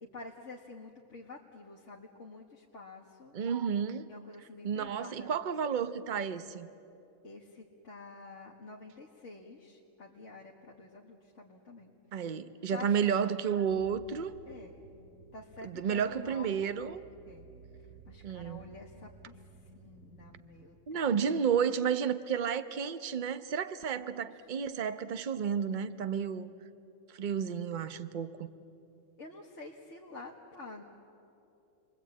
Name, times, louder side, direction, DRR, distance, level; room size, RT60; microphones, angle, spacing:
voice 1, 0.0-3.4 4.1-5.4 7.2-12.3 12.7-12.9 14.5-14.8 15.3-16.7 17.3-17.5 18.1-21.1 24.3-24.4 29.2-30.8, left 3 dB, 55° left, 2.0 m, -49 dB
voice 2, 3.3-4.1 4.6-6.7 12.1-14.3 15.6-17.0 18.2-18.6 20.9-26.5 27.1-28.5, right 7 dB, 40° right, 0.8 m, -31 dB
sound 1, 13.7-20.4, right 2 dB, 60° right, 3.4 m, -55 dB
30.0 x 22.0 x 8.5 m
omnidirectional pair, 1.5 m